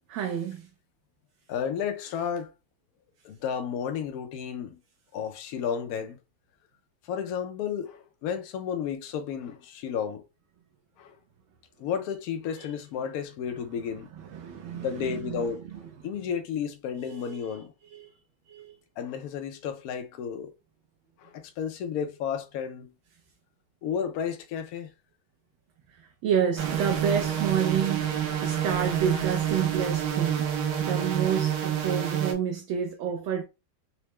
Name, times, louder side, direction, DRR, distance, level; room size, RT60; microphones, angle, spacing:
voice 1, 0.1-0.7 12.6-12.7 14.2-15.8 17.0-17.5 17.9-18.1 18.5-18.7 25.9-30.5 30.8-33.4, right 8 dB, 80° right, 1.4 m, -29 dB
voice 2, 1.5-2.5 3.2-4.8 5.1-6.2 7.1-10.2 11.0-11.2 11.8-14.1 14.7-15.6 16.0-17.7 19.0-20.5 21.2-22.9 23.8-24.9, left 7 dB, 75° left, 0.8 m, -32 dB
sound 1, 26.6-32.3, right 9 dB, 65° right, 1.1 m, -28 dB
4.3 x 2.1 x 2.9 m
omnidirectional pair, 2.2 m